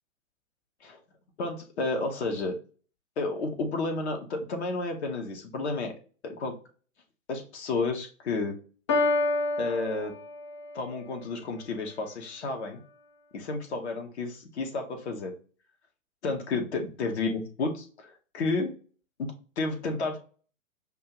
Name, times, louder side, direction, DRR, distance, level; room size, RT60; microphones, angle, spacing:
voice 1, 1.4-2.6 3.2-5.9 6.2-6.5 7.3-8.6 9.6-10.1 10.7-12.8 13.3-15.3 16.2-18.7 19.2-20.2, left 3 dB, 55° left, 3 dB, 1.0 m, -31 dB
Piano, 8.9-10.9, left 2 dB, 25° left, 0.3 m, -28 dB
5.3 x 2.4 x 2.9 m, 0.39 s
figure-of-eight pair, 110°, 41 cm